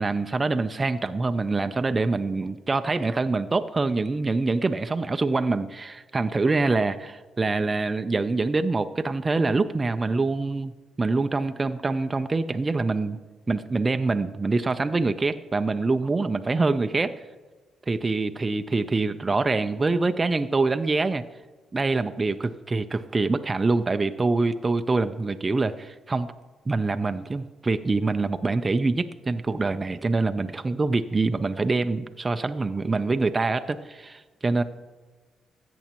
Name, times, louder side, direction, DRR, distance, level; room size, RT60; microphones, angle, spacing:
voice 1, 0.0-10.7 11.0-13.2 13.5-17.1 17.9-21.2 21.7-26.3 26.7-34.6, right 3 dB, 25° right, 9 dB, 0.4 m, -25 dB
13.5 x 8.0 x 3.0 m, 1.3 s
cardioid pair, 90°, 0 cm